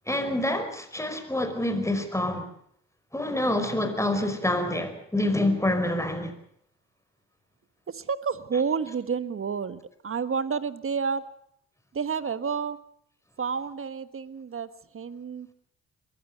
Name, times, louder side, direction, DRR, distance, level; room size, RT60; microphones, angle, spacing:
voice 1, 0.1-2.4 3.1-6.3, left 1 dB, 10° left, 5.2 m, -27 dB
voice 2, 7.9-11.2 11.9-12.8 13.4-14.7 14.9-15.5, right 6 dB, 45° right, 1.5 m, -30 dB
22.0 x 16.0 x 8.0 m
hypercardioid pair, 45°, 31 cm